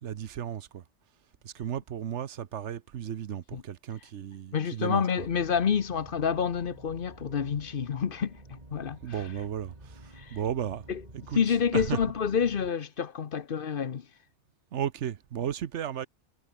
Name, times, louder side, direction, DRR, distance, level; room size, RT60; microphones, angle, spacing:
voice 1, 0.0-0.8 1.4-5.3 9.0-10.9 11.1-12.1 14.7-16.1, right 9 dB, 85° right, 1.2 m, -35 dB
voice 2, 4.5-9.0 10.2-10.4 10.9-11.0 11.4-14.1, left 7 dB, 55° left, 1.0 m, -28 dB
sound 1, 5.2-12.7, right 1 dB, 35° right, 5.0 m, -50 dB
omnidirectional pair, 1.2 m